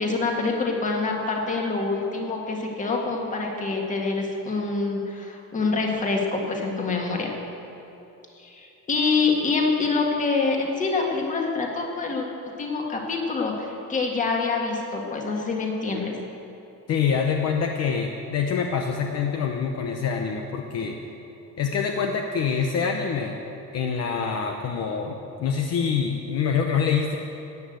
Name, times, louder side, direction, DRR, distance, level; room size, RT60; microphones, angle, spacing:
voice 1, 0.0-7.3 8.4-12.3 12.6-16.2, left 4 dB, 25° left, 0 dB, 1.8 m, -26 dB
voice 2, 16.9-21.0 21.6-23.3 23.7-27.2, left 6 dB, 55° left, 3 dB, 0.9 m, -25 dB
15.0 x 9.7 x 7.8 m, 2.9 s
cardioid pair, 180°, 31 cm